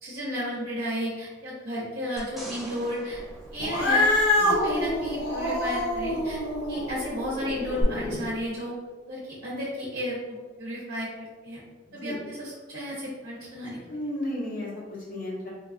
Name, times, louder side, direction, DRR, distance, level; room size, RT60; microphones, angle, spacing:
voice 1, 0.0-3.2 3.5-4.1 4.3-6.4 6.7-8.7 9.1-11.6 11.9-13.8, equal, 55° right, -6 dB, 0.6 m, -33 dB
sound 1, 2.2-4.7 7.8-7.9, right 1 dB, ahead, 0.7 m, -43 dB
Cat, 3.6-8.2, left 1 dB, 85° left, 0.6 m, -26 dB
voice 2, 13.6-15.5, left 1 dB, 50° left, -5 dB, 0.9 m, -34 dB
4.1 x 2.2 x 2.4 m, 1.4 s
head